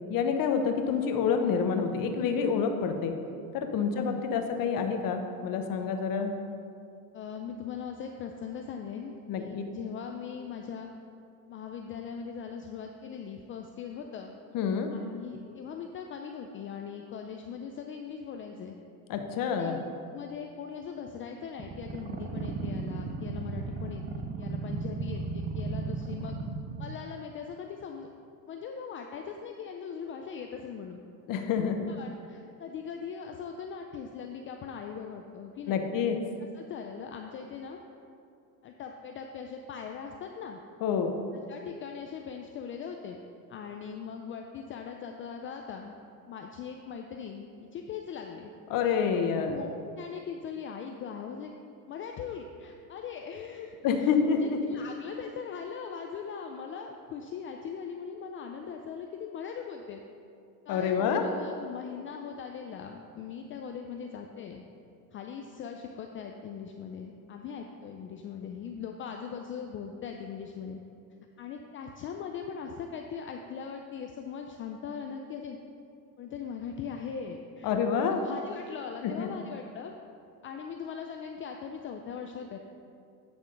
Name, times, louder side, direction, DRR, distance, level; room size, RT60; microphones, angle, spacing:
voice 1, 0.1-3.1 3.5-6.3 9.3-9.6 14.5-14.9 19.1-19.8 31.3-31.8 35.7-36.2 40.8-41.1 48.7-49.6 53.8-54.6 60.7-61.2 77.6-78.2 79.0-79.3, left 6 dB, 45° left, 5 dB, 0.9 m, -28 dB
voice 2, 7.1-10.9 11.5-14.4 14.9-18.8 19.4-19.8 20.1-26.4 26.8-28.1 28.5-31.0 31.9-35.8 36.4-37.8 38.6-40.6 41.5-43.2 43.5-45.9 46.3-48.5 49.4-51.5 51.9-54.1 54.4-60.0 60.7-64.6 65.1-70.8 71.4-75.6 76.2-79.9 80.4-82.6, left 6 dB, 30° left, 3 dB, 0.3 m, -40 dB
sound 1, 21.6-26.9, right 4 dB, 20° right, 0.5 m, -35 dB
9.0 x 3.6 x 5.1 m, 2.5 s
hypercardioid pair, 95°, 45 cm